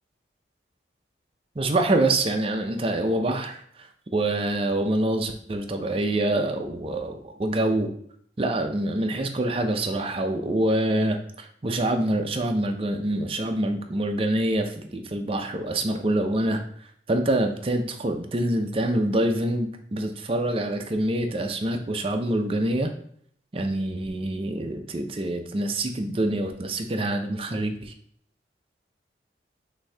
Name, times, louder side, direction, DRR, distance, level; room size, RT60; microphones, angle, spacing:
voice 1, 1.6-7.9 8.4-16.6 17.1-22.9 23.5-27.9, right 1 dB, 30° right, 5 dB, 0.5 m, -26 dB
5.9 x 2.7 x 3.3 m, 0.64 s
head